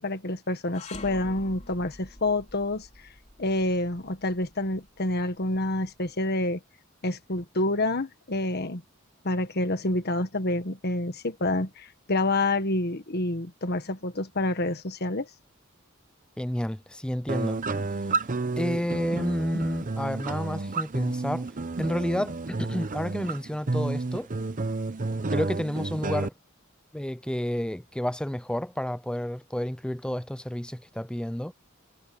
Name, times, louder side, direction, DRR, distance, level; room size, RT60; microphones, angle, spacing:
voice 1, 0.0-2.9 3.4-6.6 7.0-8.8 9.2-15.3, left 2 dB, 50° left, 1.6 m, -28 dB
sound 1, 0.7-6.0, left 2 dB, 35° left, 3.5 m, -46 dB
voice 2, 16.4-17.6 17.9-18.1 18.6-21.5 21.8-24.3 25.3-26.3 26.9-31.5, equal, 5° left, 0.5 m, -30 dB
sound 2, 17.3-26.3, right 3 dB, 40° right, 0.8 m, -31 dB
head